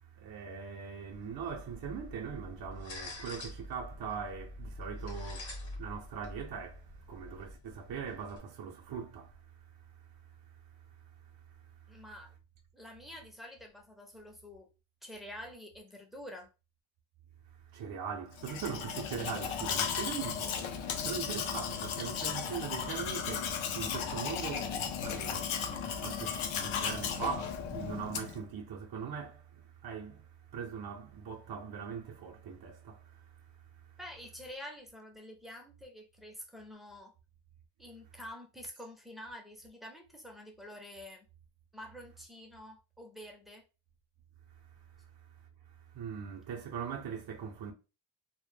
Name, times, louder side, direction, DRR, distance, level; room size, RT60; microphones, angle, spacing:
voice 1, 0.0-11.0 11.3-12.0 17.5-33.9 44.6-47.7, right 6 dB, 50° right, 0.5 m, -42 dB
sound 1, 1.1-8.4, left 1 dB, 70° left, 0.9 m, -46 dB
voice 2, 11.9-12.3 12.7-14.7 15.0-16.5 34.0-37.1 37.8-41.3 41.7-43.6, left 1 dB, ahead, 0.4 m, -48 dB
Domestic sounds home sounds, 18.4-28.5, left 7 dB, 90° left, 0.5 m, -35 dB
2.1 x 2.0 x 3.1 m
wide cardioid pair, 115°, 47 cm